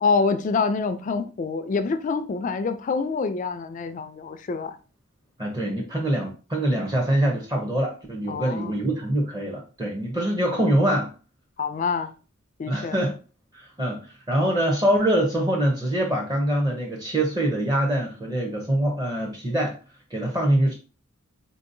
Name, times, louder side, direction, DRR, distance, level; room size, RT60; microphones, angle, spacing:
voice 1, 0.0-4.8 8.3-8.8 11.6-12.1 12.6-13.0, left 4 dB, 40° left, 0.3 m, -26 dB
voice 2, 5.4-11.1 12.7-13.1 13.5-14.0 14.3-19.8 20.1-20.7, right 1 dB, 20° right, 0.6 m, -24 dB
3.8 x 2.7 x 2.6 m
head